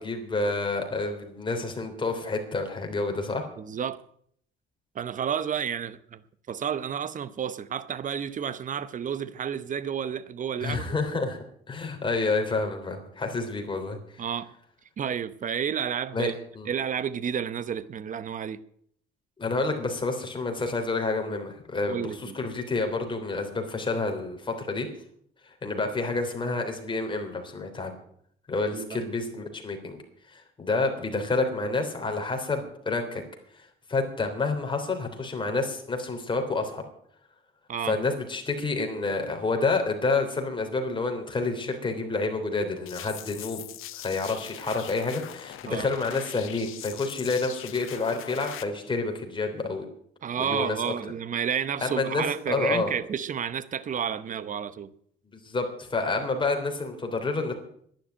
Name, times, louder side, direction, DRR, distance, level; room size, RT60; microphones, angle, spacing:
voice 1, 0.0-3.4 10.6-11.4 11.7-14.2 16.1-16.7 19.4-24.9 25.5-27.9 28.5-30.0 30.3-33.2 33.9-36.8 37.8-43.6 43.9-49.8 50.4-50.9 51.8-52.9 55.4-57.5, left 3 dB, 25° left, 3.4 m, -29 dB
voice 2, 3.6-4.0 4.9-6.2 6.5-10.9 14.2-14.5 15.0-16.3 16.7-18.6 21.9-22.4 28.7-29.0 37.7-38.0 45.6-45.9 50.2-54.9, right 8 dB, 40° right, 0.9 m, -31 dB
sound 1, 42.9-48.6, left 13 dB, 80° left, 1.1 m, -41 dB
11.5 x 10.5 x 8.7 m
cardioid pair, 130°, 21 cm